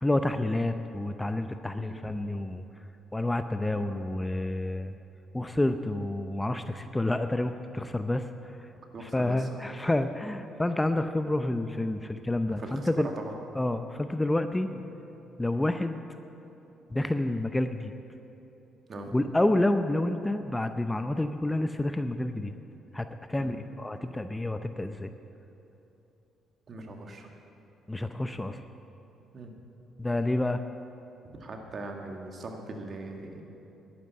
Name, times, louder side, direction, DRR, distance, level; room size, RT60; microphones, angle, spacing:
voice 1, 0.0-2.6 3.1-4.9 5.3-8.5 9.0-13.1 13.5-14.7 15.4-16.0 16.9-17.9 19.1-22.5 22.9-25.1 27.9-28.6 30.0-30.6, left 1 dB, 15° left, 9 dB, 0.6 m, -29 dB
voice 2, 8.9-9.6 12.5-13.3 14.7-14.8 18.9-19.1 23.4-23.6 26.7-27.3 29.3-29.5 31.3-33.4, right 2 dB, 50° right, 2 dB, 1.9 m, -40 dB
11.0 x 9.6 x 8.4 m, 2.9 s
hypercardioid pair, 55°, 0 cm